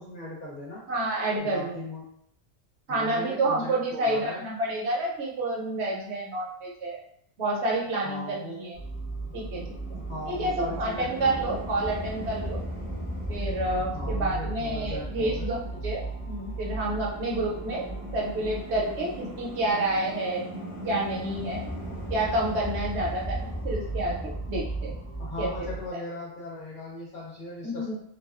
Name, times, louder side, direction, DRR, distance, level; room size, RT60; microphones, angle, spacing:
voice 1, 0.0-0.8 1.4-2.1 2.9-4.4 8.0-8.6 9.9-11.6 13.9-15.5 25.2-27.9, left 1 dB, 55° left, -5 dB, 0.7 m, -38 dB
voice 2, 0.9-1.7 2.9-7.0 7.4-8.8 9.3-9.6 10.3-12.6 13.3-17.9 18.1-20.5 20.8-21.6 22.1-25.0 25.4-25.7 27.6-27.9, right 2 dB, 70° right, -2 dB, 0.8 m, -29 dB
sound 1, 8.7-25.9, right 1 dB, 10° left, 0.4 m, -35 dB
2.3 x 2.3 x 2.3 m, 0.72 s
omnidirectional pair, 1.3 m